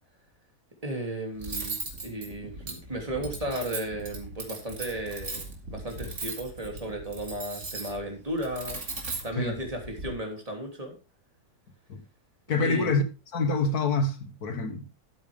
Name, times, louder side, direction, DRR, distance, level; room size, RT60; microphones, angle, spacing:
voice 1, 0.8-5.4 5.7-11.0 12.6-12.9, right 1 dB, 20° right, 3.2 m, -34 dB
Cutlery silverware, 1.4-10.1, right 3 dB, 50° right, 2.6 m, -38 dB
voice 2, 12.5-13.0 13.3-14.9, left 3 dB, 75° left, 2.1 m, -26 dB
12.5 x 8.7 x 3.5 m
omnidirectional pair, 1.6 m